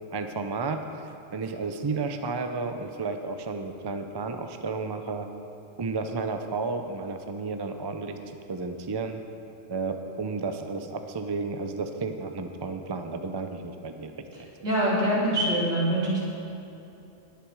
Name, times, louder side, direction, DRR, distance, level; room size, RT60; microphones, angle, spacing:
voice 1, 0.1-0.8 1.3-5.3 5.8-8.2 8.5-9.2 9.7-14.5, right 4 dB, 30° right, 6 dB, 0.4 m, -32 dB
voice 2, 14.6-16.3, right 1 dB, 75° right, -7 dB, 3.7 m, -24 dB
20.0 x 6.9 x 4.8 m, 2.9 s
omnidirectional pair, 1.4 m